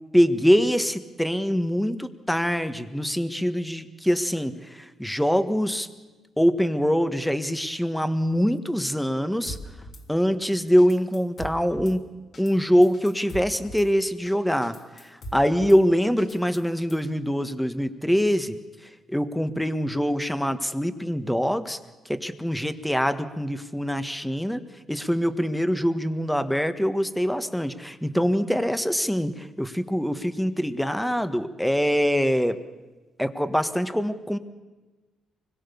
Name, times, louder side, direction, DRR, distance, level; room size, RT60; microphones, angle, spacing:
voice 1, 0.1-5.9 6.4-9.6 10.1-12.1 12.4-14.8 15.0-18.6 19.1-21.8 22.0-32.6 33.2-34.4, equal, 5° left, 10 dB, 1.5 m, -24 dB
Drum kit / Snare drum, 9.5-10.0 10.4-10.5 10.8-12.0 12.3-12.5 12.8-13.9 14.3-14.4 14.6-15.8 16.2-17.1, equal, 55° left, 3.2 m, -41 dB
24.5 x 21.5 x 7.0 m, 1.2 s
cardioid pair, 90°, 0 cm